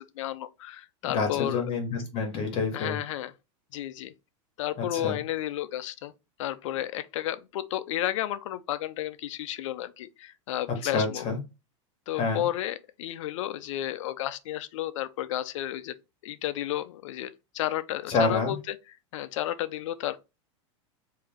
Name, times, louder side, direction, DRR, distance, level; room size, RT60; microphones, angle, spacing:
voice 1, 0.0-1.6 2.7-3.3 3.7-4.1 4.6-6.1 6.4-11.3 12.1-15.9 16.2-18.7 19.1-20.2, left 13 dB, 75° left, 0.5 m, -32 dB
voice 2, 1.0-3.0 4.9-5.2 10.8-11.4 12.2-12.4 18.1-18.5, left 4 dB, 35° left, 1.5 m, -28 dB
3.3 x 2.7 x 3.5 m
supercardioid pair, 140°, 16 cm